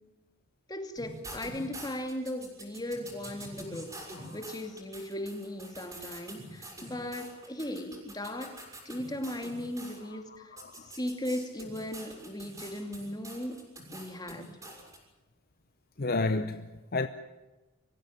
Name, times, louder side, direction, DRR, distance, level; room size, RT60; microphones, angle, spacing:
voice 1, 0.7-4.0 4.3-10.5 10.8-13.6 13.9-14.5, left 1 dB, 20° left, 2.5 m, -37 dB
sound 1, 1.0-10.0 10.6-15.0, right 1 dB, 15° right, 5.9 m, -46 dB
voice 2, 10.5-10.9 16.0-17.1, left 3 dB, 45° left, 0.8 m, -31 dB
24.5 x 16.0 x 10.0 m
head